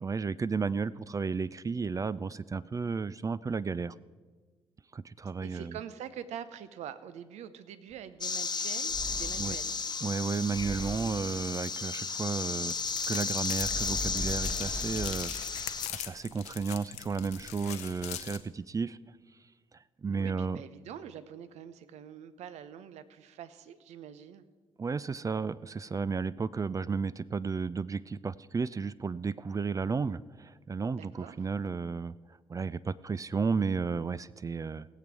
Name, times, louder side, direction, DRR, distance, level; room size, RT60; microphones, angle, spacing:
voice 1, 0.0-3.9 4.9-5.8 9.4-9.6 10.0-12.7 13.1-19.0 20.0-20.6 24.8-32.1 32.5-34.9, right 5 dB, 25° right, 17 dB, 0.4 m, -33 dB
voice 2, 5.2-9.7 20.2-24.4 30.9-31.5, right 9 dB, 65° right, 13 dB, 0.7 m, -45 dB
sound 1, 7.9-8.0 8.9-9.6 10.5-11.2 13.6-15.1, equal, 10° left, 1.0 m, -38 dB
sound 2, 8.2-15.9, left 5 dB, 35° left, 1.0 m, -34 dB
sound 3, 12.7-18.4, left 11 dB, 65° left, 0.7 m, -42 dB
18.0 x 7.5 x 4.7 m, 1.4 s
hypercardioid pair, 40°, 13 cm